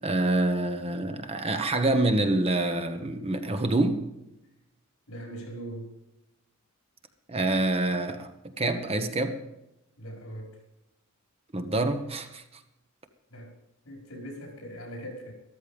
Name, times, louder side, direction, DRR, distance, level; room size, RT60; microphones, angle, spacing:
voice 1, 0.0-4.1 7.3-9.4 11.5-12.6, right 2 dB, 30° right, 7 dB, 1.2 m, -26 dB
voice 2, 5.1-5.9 10.0-10.6 13.3-13.5 13.8-15.3, right 1 dB, 70° left, 2 dB, 5.6 m, -40 dB
13.5 x 13.5 x 5.3 m, 0.89 s
head